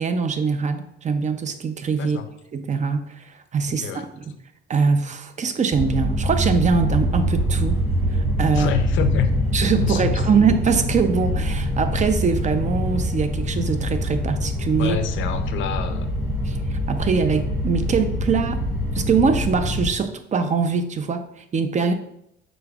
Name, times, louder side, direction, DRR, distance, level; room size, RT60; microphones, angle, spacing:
voice 1, 0.0-2.2 2.5-4.3 4.7-8.7 9.5-15.0 16.4-18.6 18.9-21.9, right 5 dB, 35° right, 9 dB, 0.5 m, -23 dB
voice 2, 2.0-2.3 3.7-4.0 8.5-9.3 9.8-10.1 14.8-16.2, left 7 dB, 75° left, 8 dB, 0.5 m, -27 dB
sound 1, 5.7-19.9, equal, 10° right, 1.4 m, -24 dB
5.1 x 3.9 x 2.3 m, 0.77 s
cardioid pair, 90°, 20 cm